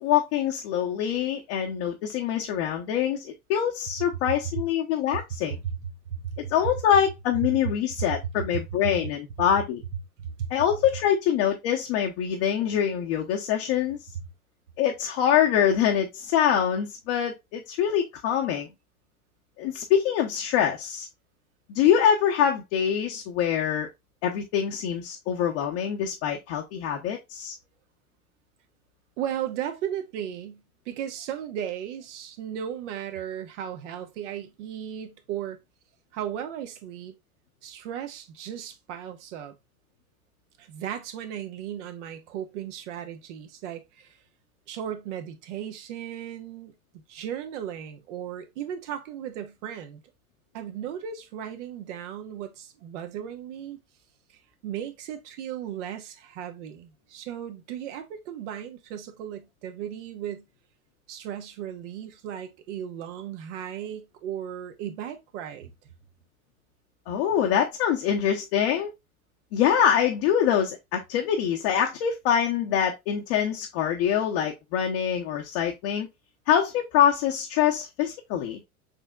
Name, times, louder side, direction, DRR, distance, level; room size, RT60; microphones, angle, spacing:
voice 1, 0.0-5.6 6.5-9.8 10.5-14.0 14.8-18.7 19.6-21.1 21.7-23.9 24.2-27.5 67.1-68.9 69.5-76.1 76.5-78.6, left 9 dB, 50° left, 1.0 m, -24 dB
voice 2, 6.1-6.5 8.1-8.2 8.8-8.9 10.2-10.5 29.2-35.6 36.1-37.1 37.6-39.6 40.6-44.2 44.7-46.7 47.1-50.0 50.5-53.8 54.6-60.5 61.1-65.7, right 9 dB, 55° right, 1.1 m, -36 dB
6.5 x 3.2 x 2.3 m
figure-of-eight pair, 90°, 44 cm